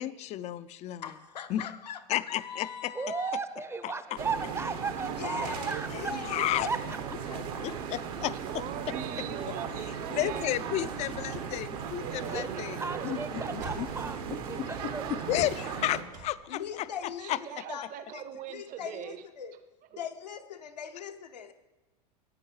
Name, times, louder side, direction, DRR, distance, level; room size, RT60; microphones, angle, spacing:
voice 1, 0.0-1.1 1.5-1.7 2.1-2.9 3.8-3.9 6.3-6.7 7.6-8.6 10.1-12.8 13.0-13.2 13.5-13.9 14.6-14.7 15.3-16.9 17.3-17.4, left 14 dB, 35° left, 16 dB, 0.4 m, -32 dB
voice 2, 1.0-3.3 5.2-5.7 6.0-6.7 7.3-7.8 16.5-19.6 19.9-21.5, left 8 dB, 85° left, 7 dB, 0.7 m, -41 dB
voice 3, 2.9-6.1 6.6-7.0 12.2-12.5 12.8-14.2 14.5-15.1, right 4 dB, 10° right, 11 dB, 0.6 m, -35 dB
sound 1, 4.2-16.0, right 7 dB, 65° right, 1.2 m, -37 dB
voice 4, 8.5-10.5 11.0-11.1 12.1-13.2 17.2-19.2 19.9-20.0, right 9 dB, 40° right, 10 dB, 0.8 m, -42 dB
sound 2, 10.9-14.7 15.3-17.3, right 2 dB, 90° right, 4.0 m, -47 dB
14.5 x 8.8 x 3.2 m, 1.1 s
hypercardioid pair, 85°, 21 cm